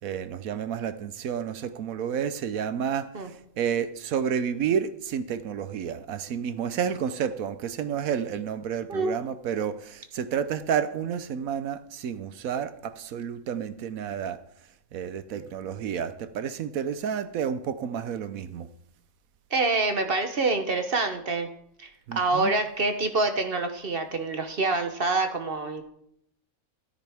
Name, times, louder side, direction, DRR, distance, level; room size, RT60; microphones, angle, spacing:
voice 1, 0.0-3.1 3.6-14.4 14.9-18.7 22.1-22.5, right 8 dB, 75° right, 12 dB, 1.2 m, -30 dB
voice 2, 19.5-21.5 21.8-25.8, right 3 dB, 45° right, 7 dB, 1.0 m, -26 dB
13.0 x 12.5 x 3.5 m, 0.74 s
omnidirectional pair, 1.5 m